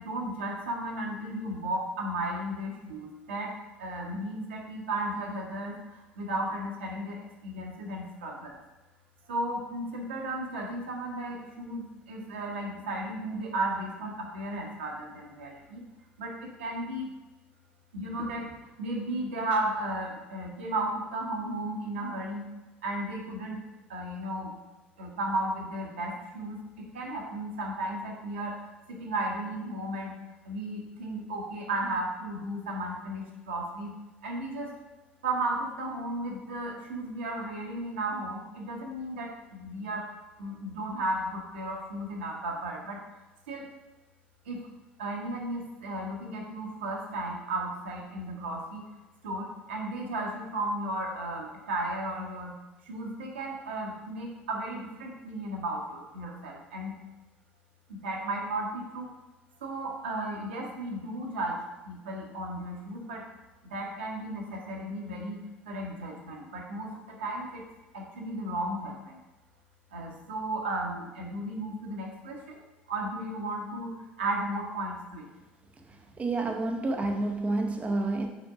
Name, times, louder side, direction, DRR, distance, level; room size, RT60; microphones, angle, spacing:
voice 1, 0.0-3.5 3.8-8.6 9.3-15.8 16.2-17.1 17.9-18.5 18.8-22.4 22.8-23.6 23.9-24.5 25.0-30.2 30.4-33.9 34.2-34.7 35.2-40.1 40.4-43.0 43.5-43.7 44.4-44.7 45.0-48.8 49.2-56.9 57.9-59.1 59.6-61.6 61.8-63.2 63.6-65.4 65.7-67.6 67.9-69.2 69.9-72.6 72.9-75.2, right 1 dB, 75° right, -1 dB, 1.2 m, -34 dB
voice 2, 76.2-78.3, right 2 dB, 20° right, 3 dB, 0.6 m, -29 dB
5.4 x 4.4 x 4.9 m, 1.1 s
figure-of-eight pair, 60°, 6 cm